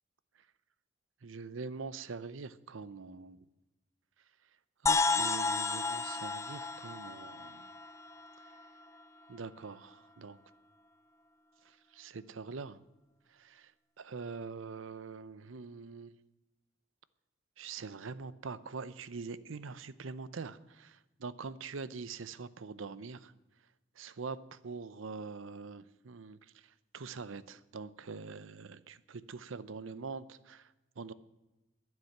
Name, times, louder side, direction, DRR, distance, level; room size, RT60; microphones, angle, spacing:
voice 1, 1.2-3.4 4.8-7.7 9.3-10.4 11.6-12.8 13.3-13.7 14.0-16.1 17.6-23.3 24.0-31.1, right 4 dB, 80° right, 17 dB, 0.7 m, -44 dB
sound 1, 4.9-8.6, left 4 dB, 15° left, 0.5 m, -32 dB
11.5 x 9.7 x 9.6 m, 1.0 s
head